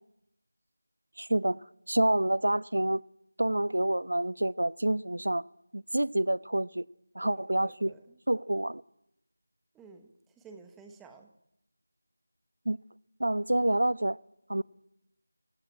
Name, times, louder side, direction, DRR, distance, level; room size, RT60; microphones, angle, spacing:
voice 1, 1.2-3.0 3.4-5.4 5.7-6.9 7.1-7.9 8.3-8.8 12.7-12.8 13.2-14.2 14.5-14.6, right 1 dB, 80° right, 0.9 m, -28 dB
voice 2, 7.2-8.2 9.7-11.3, right 4 dB, 5° right, 0.9 m, -53 dB
26.5 x 16.0 x 8.5 m
figure-of-eight pair, 175°, 0 cm